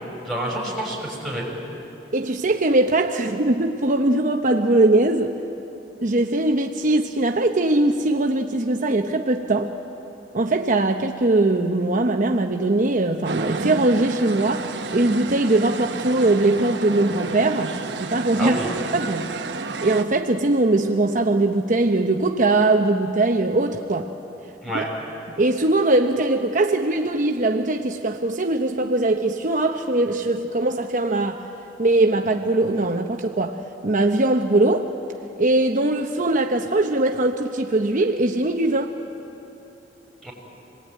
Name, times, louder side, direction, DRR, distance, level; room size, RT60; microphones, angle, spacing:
voice 1, 0.2-1.5 18.4-18.7 24.6-24.9 40.2-40.3, right 1 dB, 5° left, -2 dB, 6.3 m, -27 dB
voice 2, 2.1-5.3 6.0-9.7 10.3-18.6 18.9-19.3 19.8-24.1 24.7-24.8 25.4-31.5 31.8-34.9 35.4-38.9, right 2 dB, 45° right, 4 dB, 0.9 m, -21 dB
sound 1, 13.3-20.0, right 3 dB, 70° right, 1.2 m, -31 dB
27.0 x 20.0 x 9.3 m, 3.0 s
head